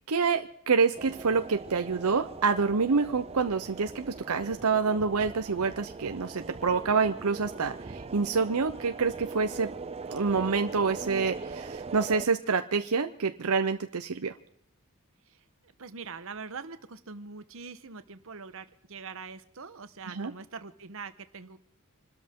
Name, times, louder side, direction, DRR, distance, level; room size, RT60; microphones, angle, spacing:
voice 1, 0.1-9.7 10.1-14.3 20.1-20.3, right 5 dB, 85° right, 7 dB, 0.8 m, -27 dB
sound 1, 0.9-12.3, right 4 dB, 25° right, 0.6 m, -41 dB
voice 2, 15.8-21.6, right 5 dB, 65° right, 11 dB, 1.1 m, -43 dB
27.0 x 13.0 x 3.7 m, 0.69 s
head